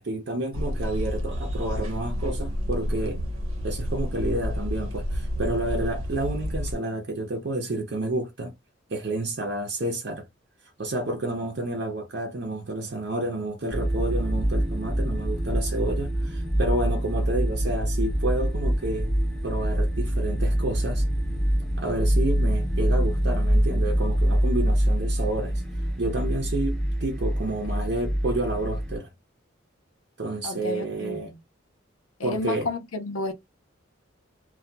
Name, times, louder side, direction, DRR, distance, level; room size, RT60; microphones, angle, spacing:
voice 1, 0.0-3.2 3.6-8.5 8.9-10.2 10.8-19.1 19.4-21.0 21.8-25.6 26.0-29.1 30.2-31.3 32.2-32.7, right 2 dB, 55° right, 0.7 m, -30 dB
sound 1, 0.5-6.8, equal, 90° right, 0.9 m, -30 dB
sound 2, 13.7-29.0, equal, ahead, 0.7 m, -25 dB
voice 2, 30.4-31.4 32.2-33.3, left 2 dB, 85° left, 0.7 m, -32 dB
2.7 x 2.3 x 2.2 m
head